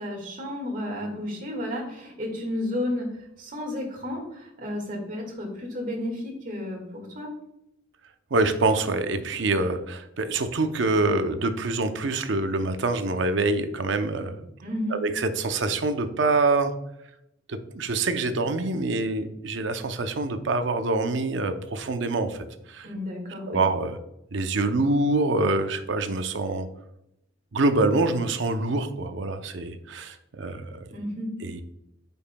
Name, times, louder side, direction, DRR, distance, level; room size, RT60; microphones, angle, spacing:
voice 1, 0.0-3.1 3.4-7.3 14.6-15.0 22.8-23.6 30.9-31.3, left 1 dB, 40° right, 1 dB, 1.8 m, -32 dB
voice 2, 8.3-14.5 14.9-16.7 17.5-22.9 23.5-24.0 24.3-26.7 27.5-30.8 31.4-31.6, right 2 dB, 60° right, 9 dB, 0.6 m, -25 dB
8.7 x 5.4 x 2.2 m, 0.82 s
head